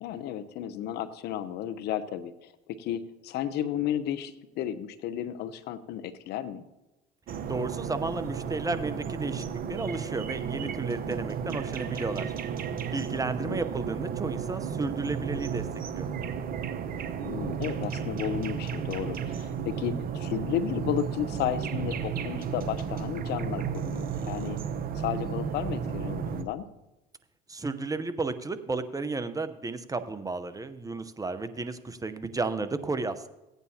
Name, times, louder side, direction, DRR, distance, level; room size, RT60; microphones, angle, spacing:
voice 1, 0.0-2.5 2.8-6.6 13.4-13.6 17.2-24.6 25.0-26.6, left 10 dB, 65° left, 12 dB, 0.8 m, -33 dB
sound 1, 7.3-26.4, right 7 dB, 50° right, 1.0 m, -33 dB
voice 2, 7.5-12.3 12.9-15.6 15.9-16.1 27.5-33.3, right 3 dB, 20° right, 11 dB, 0.8 m, -33 dB
16.5 x 9.2 x 2.8 m, 0.98 s
hypercardioid pair, 75°, 19 cm